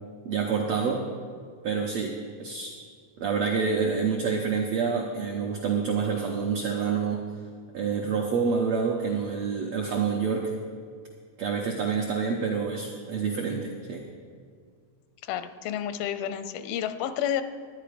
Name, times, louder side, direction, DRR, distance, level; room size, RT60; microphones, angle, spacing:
voice 1, 0.2-1.1 1.6-2.7 3.2-7.2 7.7-10.5 11.4-14.1, right 5 dB, 85° right, 0 dB, 1.5 m, -27 dB
voice 2, 15.2-17.4, left 10 dB, 85° left, 11 dB, 2.5 m, -30 dB
12.0 x 10.0 x 5.0 m, 2.1 s
omnidirectional pair, 4.2 m